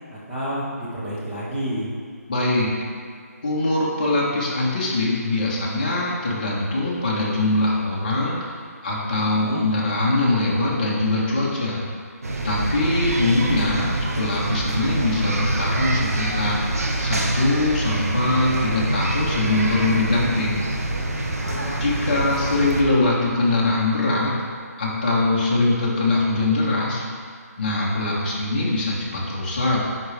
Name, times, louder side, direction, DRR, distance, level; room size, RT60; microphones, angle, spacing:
voice 1, 0.1-1.9 9.2-9.6 21.4-22.4, equal, 5° right, -9 dB, 0.5 m, -30 dB
voice 2, 2.3-2.7 3.4-11.8 12.4-20.6 21.8-24.3 24.8-27.0 27.6-29.8, left 2 dB, 30° left, -6 dB, 1.3 m, -22 dB
sound 1, 12.2-22.8, right 1 dB, 65° right, 0.9 m, -25 dB
10.0 x 4.0 x 3.4 m, 2.2 s
hypercardioid pair, 175°, 9 cm